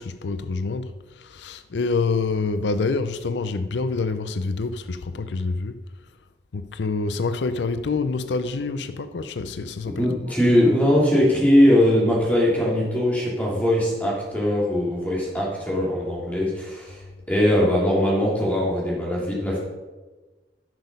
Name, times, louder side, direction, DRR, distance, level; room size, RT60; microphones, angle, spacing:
voice 1, 0.0-6.1 6.5-10.1, left 4 dB, 85° left, 0.5 m, -27 dB
voice 2, 9.9-17.0 17.3-19.6, left 1 dB, 10° left, 2.7 m, -20 dB
10.5 x 6.2 x 5.3 m
head